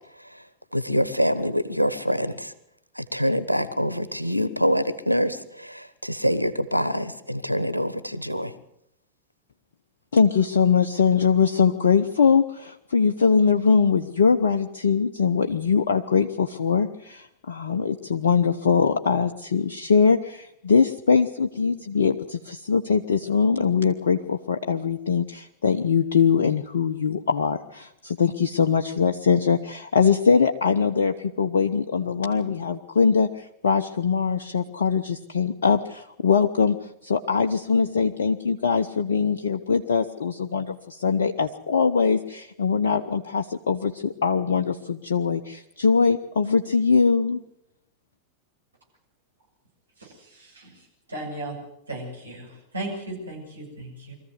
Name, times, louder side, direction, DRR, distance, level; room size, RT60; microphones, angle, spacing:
voice 1, 0.7-2.5 2.9-8.5, equal, 90° left, 16 dB, 1.2 m, -25 dB
voice 2, 10.1-36.8 37.0-47.4, left 5 dB, 65° left, 6 dB, 0.9 m, -22 dB
voice 3, 50.0-50.7 51.1-51.6 51.9-52.5 52.7-54.1, right 1 dB, 80° right, -1 dB, 7.4 m, -36 dB
23.5 x 14.5 x 8.1 m, 0.80 s
figure-of-eight pair, 90°, 0 cm